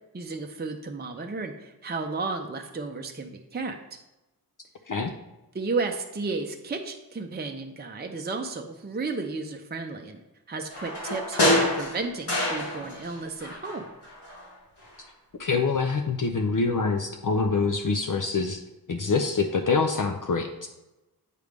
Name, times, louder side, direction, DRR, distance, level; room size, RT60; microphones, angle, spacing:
voice 1, 0.1-3.8 5.5-10.2 10.5-13.9, right 3 dB, 25° right, 3 dB, 0.6 m, -33 dB
sound 1, 10.7-13.1 13.4-14.5 14.8-14.9, left 1 dB, 85° left, 2.5 m, -27 dB
voice 2, 15.4-18.6 18.9-20.7, left 4 dB, 55° left, 4 dB, 0.6 m, -25 dB
8.3 x 3.2 x 5.1 m, 0.99 s
wide cardioid pair, 85°, 39 cm